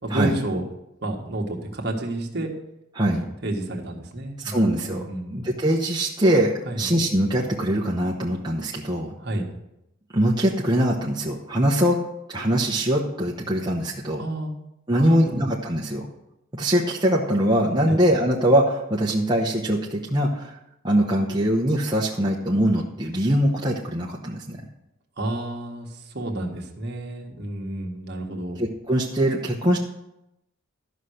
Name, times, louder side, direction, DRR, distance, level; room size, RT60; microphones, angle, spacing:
voice 1, 0.0-0.6 1.0-2.5 3.0-5.3 6.6-6.8 9.2-9.5 14.2-14.6 15.0-15.5 17.9-18.0 25.2-28.6, right 1 dB, 50° right, 1 dB, 1.7 m, -30 dB
voice 2, 4.4-5.0 5.3-9.1 10.1-12.0 12.3-14.2 14.9-16.1 16.5-20.6 20.8-24.6 28.6-29.8, right 1 dB, 20° right, -3 dB, 1.0 m, -22 dB
13.0 x 5.7 x 6.5 m, 0.85 s
head